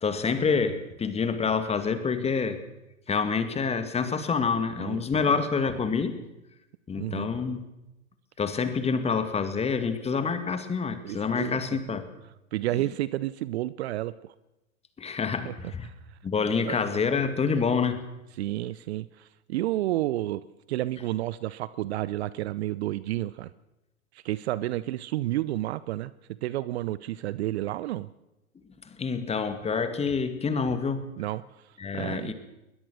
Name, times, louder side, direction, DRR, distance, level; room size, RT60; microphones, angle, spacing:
voice 1, 0.0-2.6 3.1-6.2 6.9-7.6 8.4-12.1 15.0-15.9 16.2-18.0 29.0-31.0 31.8-32.3, left 5 dB, 15° left, 10 dB, 2.1 m, -27 dB
voice 2, 4.8-5.4 7.0-7.3 11.0-11.6 12.5-14.3 15.4-15.5 15.8-16.2 16.7-17.1 18.4-20.4 20.7-23.5 24.1-28.1 31.2-32.3, right 15 dB, 50° right, 18 dB, 0.8 m, -31 dB
21.0 x 21.0 x 6.4 m, 0.95 s
figure-of-eight pair, 105°, 42 cm